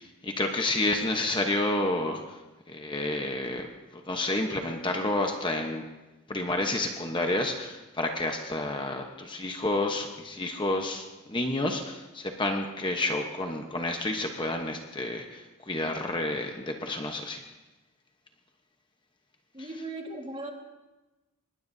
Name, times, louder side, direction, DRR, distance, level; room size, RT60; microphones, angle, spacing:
voice 1, 0.0-2.2 2.7-3.7 4.1-5.8 6.3-17.4, left 2 dB, 20° left, 3 dB, 1.0 m, -30 dB
voice 2, 19.5-20.5, right 2 dB, 25° right, 2 dB, 1.7 m, -37 dB
23.5 x 20.5 x 2.7 m, 1.1 s
head